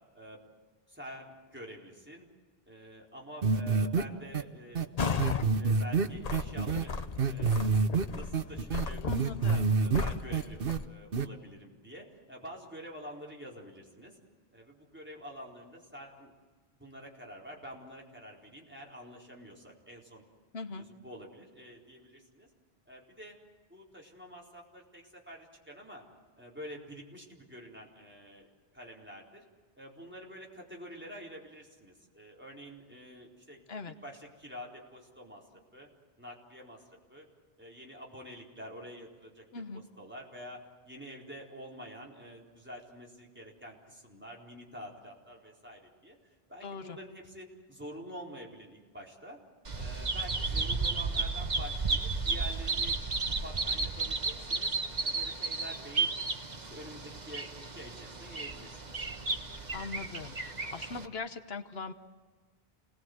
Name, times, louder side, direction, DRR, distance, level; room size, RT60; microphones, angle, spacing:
voice 1, 0.9-2.3 2.7-4.9 5.5-6.9 7.2-7.5 8.1-14.2 14.5-16.3 16.8-20.2 20.8-22.5 22.9-23.4 23.7-26.0 26.4-28.5 28.7-29.4 29.7-33.6 34.0-35.5 35.7-35.9 36.2-36.8 37.1-37.3 37.6-39.4 39.7-46.2 46.5-49.4 49.7-53.0 53.3-54.7 55.0-56.1 56.6-59.0, equal, 10° right, -3 dB, 4.4 m, -48 dB
sound 1, 3.4-4.0 4.3-4.4 4.8-4.9 5.2-6.8 7.2-8.0 8.3-10.0 10.3-10.8 11.1-11.3, right 5 dB, 65° right, 1.1 m, -27 dB
sound 2, 5.0-5.5 5.9-10.9, left 5 dB, 40° left, 0.9 m, -35 dB
voice 2, 9.0-9.7 20.5-20.9 33.7-33.9 39.5-39.8 46.6-47.0 59.7-61.9, left 4 dB, 75° left, 9 dB, 1.3 m, -40 dB
Bird vocalization bird call bird song, 49.6-61.1, right 3 dB, 45° right, 1.5 m, -33 dB
28.5 x 19.5 x 8.0 m, 1.4 s
omnidirectional pair, 1.0 m